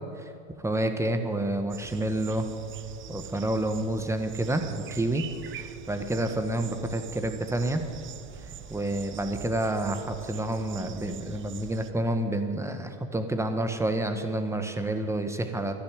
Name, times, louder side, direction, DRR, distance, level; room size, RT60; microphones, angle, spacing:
voice 1, 0.6-2.5 3.1-5.2 5.5-7.8 8.7-15.7, right 1 dB, 10° right, 7 dB, 1.3 m, -29 dB
sound 1, 1.7-11.9, right 8 dB, 35° right, 0.9 m, -44 dB
11.0 x 11.0 x 9.5 m, 2.5 s
hypercardioid pair, 105°, 34 cm